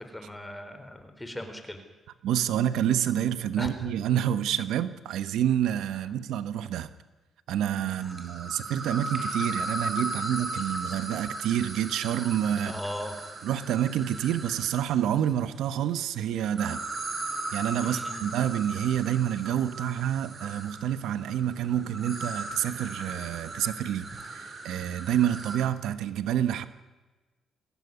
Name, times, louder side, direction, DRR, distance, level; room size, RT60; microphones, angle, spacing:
voice 1, 0.0-1.8 3.6-3.9 7.9-8.2 10.1-10.3 12.7-13.2 17.8-18.3, left 1 dB, 10° left, 7 dB, 4.1 m, -39 dB
voice 2, 2.2-6.9 7.5-12.7 13.4-16.8 17.5-26.7, right 10 dB, 85° right, 12 dB, 1.2 m, -28 dB
sound 1, 7.9-15.1 16.4-25.6, right 2 dB, 40° right, 5.7 m, -37 dB
22.0 x 16.5 x 9.7 m, 1.2 s
cardioid pair, 90°, 0 cm